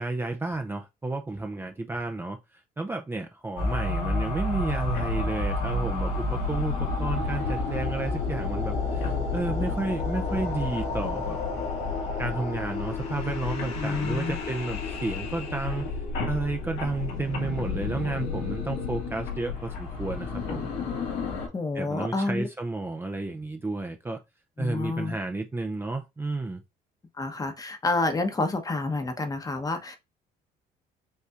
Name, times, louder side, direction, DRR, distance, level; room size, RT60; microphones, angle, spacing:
voice 1, 0.0-11.4 12.2-15.9 16.3-20.7 21.7-24.2 24.6-26.6, right 2 dB, 15° right, 0.5 m, -32 dB
sound 1, 3.6-21.5, left 3 dB, 80° left, 1.9 m, -30 dB
voice 2, 13.8-14.4 21.5-22.5 24.6-25.2 27.2-30.0, left 3 dB, 20° left, 0.9 m, -29 dB
5.4 x 3.2 x 2.4 m
cardioid pair, 110°, 17 cm